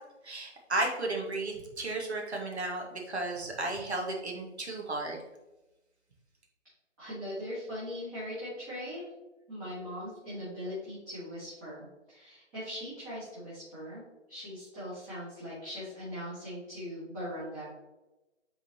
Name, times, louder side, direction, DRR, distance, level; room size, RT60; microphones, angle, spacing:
voice 1, 0.2-5.2, right 2 dB, 60° right, 0 dB, 1.7 m, -34 dB
voice 2, 7.0-9.0 9.5-17.6, equal, 15° right, -11 dB, 1.7 m, -40 dB
8.7 x 3.9 x 2.9 m, 1.0 s
figure-of-eight pair, 150°, 37 cm